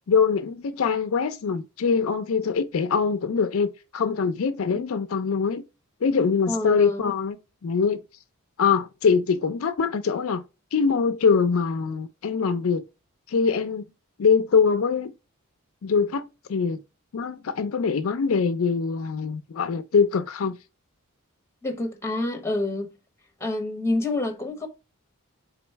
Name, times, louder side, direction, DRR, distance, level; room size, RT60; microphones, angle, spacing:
voice 1, 0.1-5.6 6.0-8.0 8.6-10.4 10.7-12.8 13.3-13.8 14.2-15.1 15.8-16.8 17.1-20.6, left 5 dB, 70° left, 0.4 m, -23 dB
voice 2, 6.5-7.1 21.6-22.9 23.4-24.7, left 2 dB, 10° left, 1.0 m, -27 dB
4.0 x 3.0 x 4.4 m
head